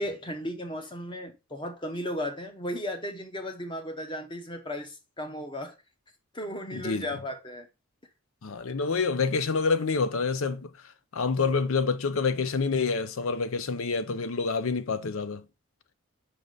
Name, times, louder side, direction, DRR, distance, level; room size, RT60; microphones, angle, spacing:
voice 1, 0.0-5.8 6.3-7.7, equal, 20° left, 0.9 m, -35 dB
voice 2, 6.7-7.1 8.4-10.7 11.1-15.4, left 4 dB, 75° left, 0.6 m, -27 dB
5.3 x 4.8 x 3.9 m
head